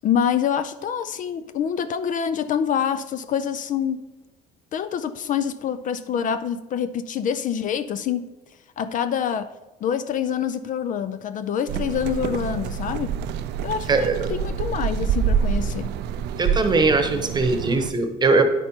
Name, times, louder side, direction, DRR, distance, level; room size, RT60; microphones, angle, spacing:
voice 1, 0.0-4.0 4.7-8.3 8.8-9.5 9.8-13.1 13.6-15.9, left 8 dB, 50° left, 13 dB, 0.4 m, -26 dB
sound 1, 11.7-17.9, right 7 dB, 80° right, 0.4 m, -26 dB
voice 2, 16.4-18.4, right 3 dB, 25° right, 6 dB, 1.1 m, -20 dB
9.6 x 5.4 x 4.4 m, 1.1 s
cardioid pair, 110°, 17 cm